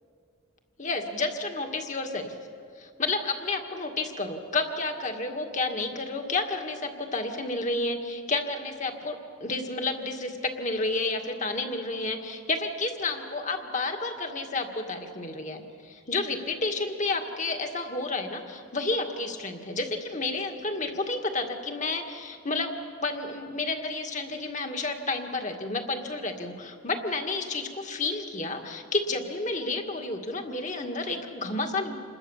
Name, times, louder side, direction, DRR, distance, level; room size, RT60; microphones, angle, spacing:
voice 1, 0.8-2.3 2.8-22.7 23.0-31.9, left 3 dB, 35° left, 4 dB, 2.0 m, -31 dB
28.0 x 21.0 x 7.3 m, 2.2 s
head